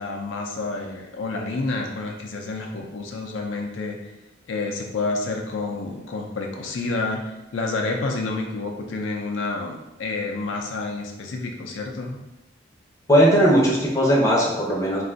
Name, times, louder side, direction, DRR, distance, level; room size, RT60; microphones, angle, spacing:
voice 1, 0.0-4.1 4.5-12.2, left 3 dB, 80° left, 2 dB, 0.4 m, -29 dB
voice 2, 13.1-15.0, equal, 15° left, -4 dB, 0.6 m, -18 dB
2.4 x 2.3 x 3.8 m, 0.99 s
head